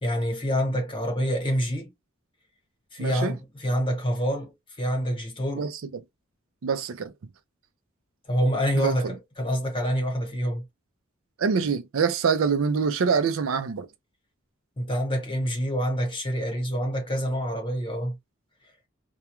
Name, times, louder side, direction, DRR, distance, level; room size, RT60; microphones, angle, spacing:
voice 1, 0.0-1.9 2.9-5.7 8.3-10.7 14.8-18.2, equal, 25° left, 1.1 m, -27 dB
voice 2, 3.0-3.3 5.5-5.8 6.6-7.1 8.7-9.1 11.4-13.9, right 5 dB, 80° right, 0.5 m, -25 dB
2.3 x 2.2 x 2.9 m
head